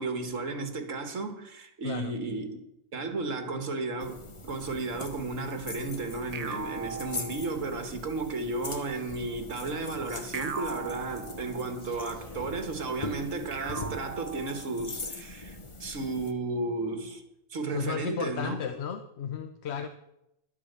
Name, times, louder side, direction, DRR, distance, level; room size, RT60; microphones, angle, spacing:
voice 1, 0.0-2.5 2.9-17.2 17.5-18.6 19.8-19.9, right 3 dB, 75° right, 1.9 m, -34 dB
sound 1, 4.0-16.3, left 2 dB, 25° left, 0.9 m, -41 dB
sound 2, 6.3-8.0 10.3-11.9 13.5-15.0, right 5 dB, 40° right, 0.7 m, -39 dB
sound 3, 11.8-14.0, equal, 10° right, 5.2 m, -54 dB
voice 2, 17.7-19.9, left 7 dB, 60° left, 1.0 m, -34 dB
12.0 x 8.6 x 6.7 m
omnidirectional pair, 1.3 m